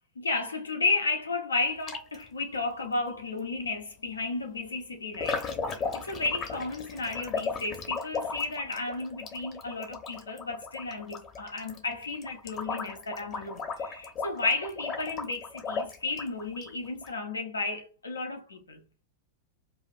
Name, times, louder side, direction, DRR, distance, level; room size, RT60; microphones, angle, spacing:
voice 1, 0.2-18.8, left 3 dB, 75° left, 0.8 m, -33 dB
sound 1, 1.9-2.3 3.4-3.5 5.1-17.1, left 4 dB, 30° left, 0.9 m, -36 dB
4.9 x 2.5 x 2.5 m
figure-of-eight pair, 90°, 0 cm